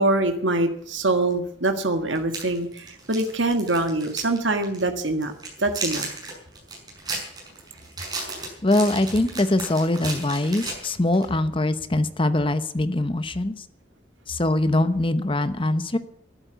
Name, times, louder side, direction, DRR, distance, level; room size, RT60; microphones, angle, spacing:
voice 1, 0.0-5.3 5.6-6.1, right 2 dB, 85° right, 6 dB, 1.7 m, -24 dB
sound 1, 1.3-1.4 2.1-4.4 4.6-4.8 5.2-11.3, right 3 dB, 20° right, 6.1 m, -34 dB
voice 2, 8.6-13.6 14.3-16.0, left 2 dB, 30° left, 12 dB, 0.9 m, -22 dB
13.0 x 11.5 x 8.0 m, 0.70 s
head